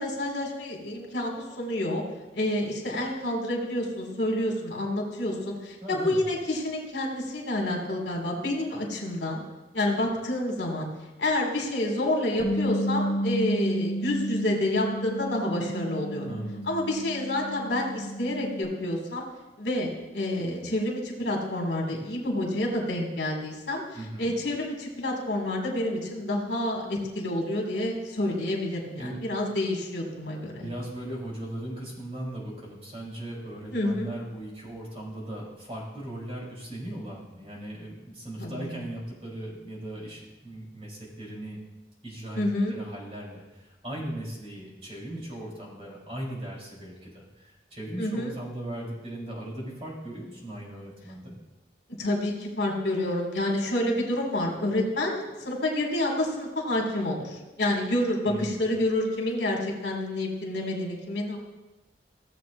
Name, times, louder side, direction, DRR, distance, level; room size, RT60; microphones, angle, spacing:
voice 1, 0.0-2.0 2.3-9.4 9.7-10.9 11.2-16.3 16.7-19.3 19.6-23.8 24.2-30.7 33.7-34.1 38.4-38.8 42.4-42.7 48.0-48.3 52.0-61.4, left 1 dB, 85° left, 0 dB, 2.2 m, -28 dB
voice 2, 5.8-6.2 16.3-16.7 23.9-24.3 28.9-29.2 30.5-41.6 42.0-42.4 42.7-51.3 58.3-58.6, right 1 dB, 35° right, -4 dB, 3.5 m, -38 dB
Bass guitar, 12.4-18.6, equal, 55° right, 3.0 m, -31 dB
16.5 x 7.5 x 2.6 m, 1.1 s
head